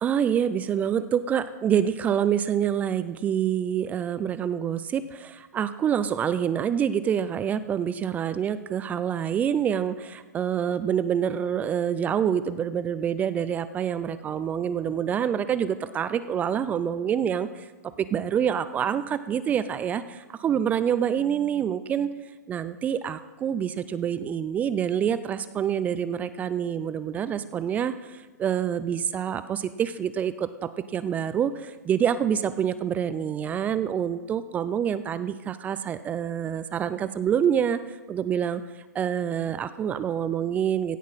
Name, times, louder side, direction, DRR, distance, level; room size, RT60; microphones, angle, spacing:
voice 1, 0.0-17.7 18.0-22.1 22.5-38.6 38.9-41.0, right 8 dB, 15° right, 14 dB, 0.3 m, -26 dB
16.5 x 6.3 x 5.5 m, 1.3 s
hypercardioid pair, 130°, 9 cm